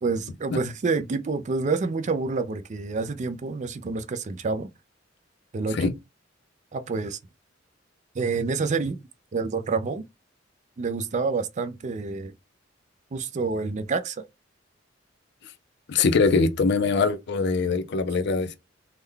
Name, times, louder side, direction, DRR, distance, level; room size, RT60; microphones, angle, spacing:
voice 1, 0.0-4.7 5.5-5.9 6.7-7.2 8.1-9.0 9.3-10.0 10.8-12.3 13.1-14.2, right 4 dB, 40° right, 0.4 m, -28 dB
voice 2, 15.9-18.6, left 4 dB, 60° left, 0.5 m, -22 dB
3.6 x 2.2 x 3.3 m
head